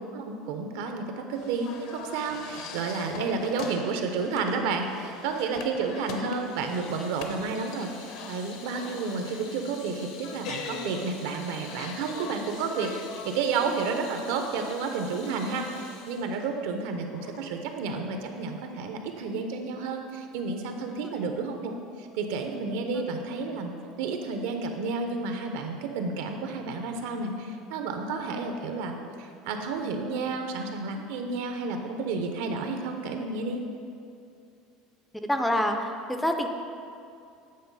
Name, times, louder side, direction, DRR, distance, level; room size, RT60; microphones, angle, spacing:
voice 1, 0.1-33.6, right 4 dB, 75° right, 4 dB, 0.7 m, -31 dB
sound 1, 1.4-13.3, left 5 dB, 55° left, 0.7 m, -42 dB
Water tap faucet / Sink (filling or washing), 6.2-17.5, left 4 dB, 85° left, 1.0 m, -48 dB
voice 2, 35.3-36.5, equal, 5° left, 5 dB, 0.4 m, -26 dB
8.5 x 4.0 x 5.4 m, 2.5 s
cardioid pair, 160°, 0 cm